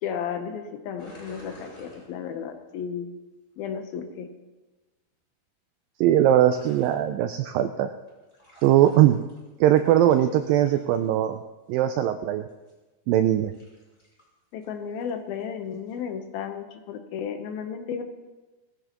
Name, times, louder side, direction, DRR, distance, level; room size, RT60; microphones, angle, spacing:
voice 1, 0.0-3.1 3.6-4.3 14.5-18.0, left 7 dB, 75° left, 7 dB, 2.6 m, -33 dB
sound 1, 1.0-2.5 6.5-7.0 8.1-9.5 9.8-11.1 12.5-12.7 13.3-14.3 14.6-14.7 15.0-15.1 15.7-16.0, equal, 15° left, 3.3 m, -49 dB
voice 2, 6.0-7.9 8.6-9.2 9.6-11.4 11.7-12.5 13.1-13.5, right 12 dB, 85° right, 8 dB, 2.0 m, -20 dB
20.0 x 14.5 x 3.0 m, 1.2 s
omnidirectional pair, 4.6 m